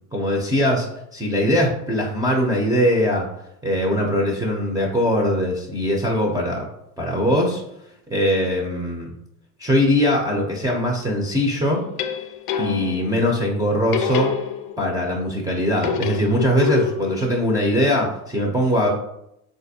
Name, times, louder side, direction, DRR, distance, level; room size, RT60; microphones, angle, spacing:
voice 1, 0.1-0.9 1.1-3.3 3.6-6.6 7.0-7.6 8.1-9.1 9.6-11.8 12.6-14.3 14.8-18.9, equal, 10° right, -1 dB, 0.5 m, -21 dB
sound 1, 11.7-13.1 13.9-15.0 15.8-17.2, left 7 dB, 65° left, 0.5 m, -26 dB
3.9 x 2.5 x 2.6 m, 0.80 s
hypercardioid pair, 95°, 47 cm